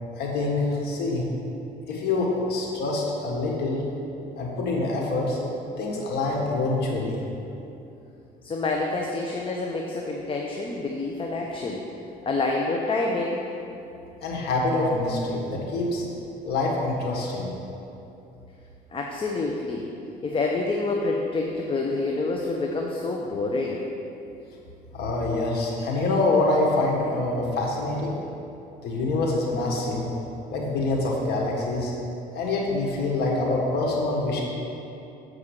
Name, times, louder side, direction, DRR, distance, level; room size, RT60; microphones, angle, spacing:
voice 1, 0.2-1.3 1.9-3.8 4.4-5.4 5.8-7.2 14.2-16.0 16.4-17.5 24.9-28.1 28.8-30.1 30.5-31.9 32.3-34.4, left 2 dB, 75° left, -2 dB, 1.6 m, -25 dB
voice 2, 8.4-11.8 12.2-13.4 18.9-19.9 20.2-23.8, left 3 dB, 30° left, 0 dB, 0.7 m, -27 dB
7.3 x 4.9 x 6.6 m, 2.8 s
cardioid pair, 110°, 17 cm